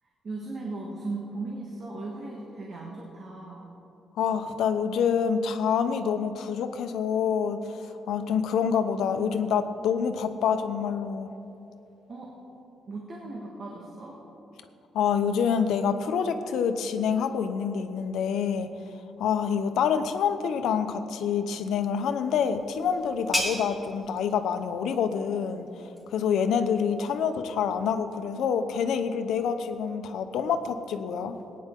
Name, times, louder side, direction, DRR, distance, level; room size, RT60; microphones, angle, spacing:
voice 1, 0.2-3.7 12.1-12.3 12.9-14.2, right 2 dB, 40° right, -2 dB, 1.5 m, -37 dB
voice 2, 4.2-11.3 14.9-18.7 19.2-25.7 26.1-31.4, left 7 dB, 85° left, 8 dB, 0.8 m, -27 dB
sound 1, 22.0-27.4, left 1 dB, ahead, 1.8 m, -37 dB
21.5 x 9.5 x 3.8 m, 2.8 s
cardioid pair, 165°, 0 cm